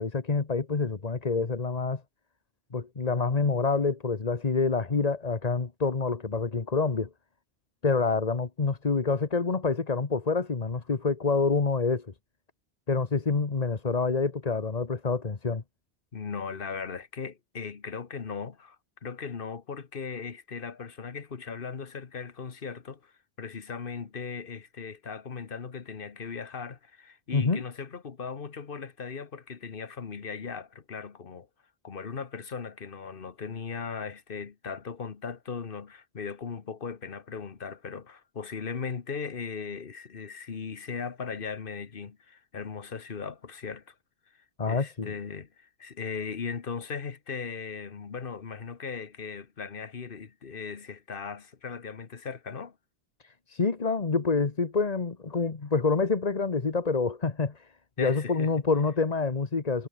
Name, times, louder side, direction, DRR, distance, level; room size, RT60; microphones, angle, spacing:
voice 1, 0.0-2.0 2.7-7.1 7.8-12.1 12.9-15.6 27.3-27.6 44.6-45.1 53.2-57.7 58.0-59.9, left 4 dB, 40° left, 1.3 m, -27 dB
voice 2, 16.1-18.8 19.0-23.1 23.4-31.5 31.8-43.9 44.7-52.8 58.0-58.5, left 5 dB, 60° left, 1.4 m, -38 dB
omnidirectional pair, 1.1 m